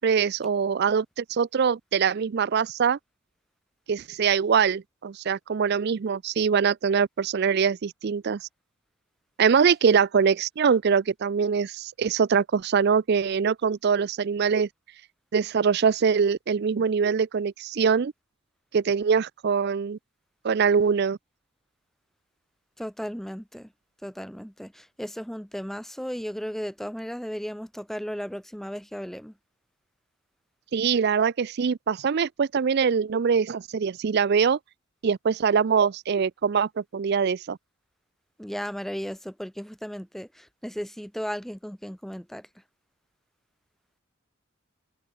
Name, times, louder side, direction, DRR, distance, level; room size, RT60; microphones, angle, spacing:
voice 1, 0.0-3.0 3.9-8.4 9.4-14.7 15.3-18.1 18.7-20.0 20.4-21.2 30.7-34.6 35.0-37.6, right 6 dB, 50° right, 0.4 m, -23 dB
voice 2, 22.8-23.7 24.0-29.3 38.4-42.5, equal, ahead, 1.0 m, -35 dB
open air
head